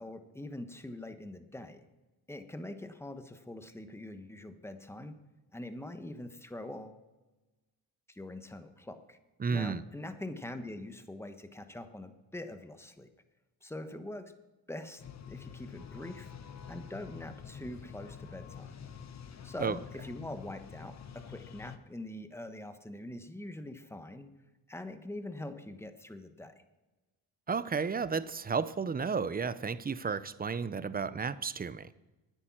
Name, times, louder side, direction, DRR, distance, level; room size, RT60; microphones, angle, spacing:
voice 1, 0.0-1.8 2.3-5.1 5.5-7.0 8.1-9.2 9.5-13.1 13.6-14.3 14.7-16.3 16.7-18.8 19.4-24.3 24.7-26.5, left 1 dB, 5° left, 8 dB, 1.2 m, -43 dB
voice 2, 9.4-9.8 19.6-19.8 27.5-31.9, right 5 dB, 25° right, 16 dB, 0.6 m, -32 dB
sound 1, 15.0-21.8, left 7 dB, 45° left, 1.0 m, -47 dB
9.9 x 9.1 x 7.4 m, 1.1 s
cardioid pair, 75°, 39 cm